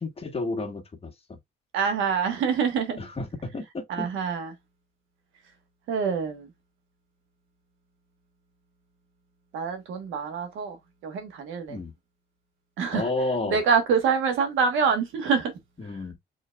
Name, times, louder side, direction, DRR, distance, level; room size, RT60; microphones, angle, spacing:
voice 1, 0.0-1.1 3.0-4.1 11.7-11.9 12.9-13.6 15.8-16.1, left 2 dB, 30° left, 1.4 m, -31 dB
voice 2, 1.7-3.0 3.9-4.5 5.9-6.5 9.5-10.8 11.0-11.8 12.8-13.1 13.5-15.5, right 6 dB, 90° right, 1.2 m, -25 dB
4.8 x 3.9 x 2.2 m
cardioid pair, 90°, 20 cm